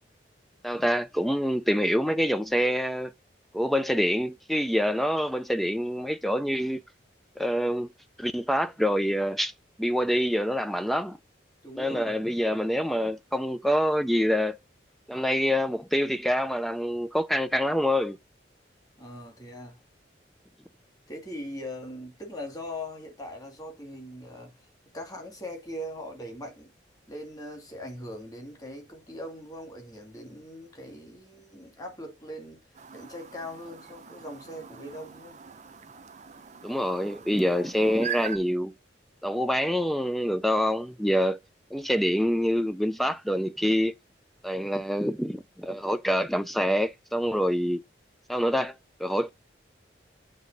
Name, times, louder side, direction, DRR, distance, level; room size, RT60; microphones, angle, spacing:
voice 1, 0.6-3.1 3.5-6.8 7.4-7.9 8.2-9.5 9.8-11.2 11.8-14.6 15.1-18.2 36.6-38.7 39.2-41.4 41.7-43.9 44.4-47.8 48.3-48.7 49.0-49.3, equal, ahead, 0.3 m, -26 dB
voice 2, 11.6-12.3 19.0-19.8 21.1-24.5 24.9-26.7 27.1-32.6 32.9-35.4, left 1 dB, 20° left, 2.0 m, -40 dB
Chirp tweet, 32.7-38.4, right 8 dB, 40° right, 0.6 m, -41 dB
7.5 x 3.5 x 5.1 m
head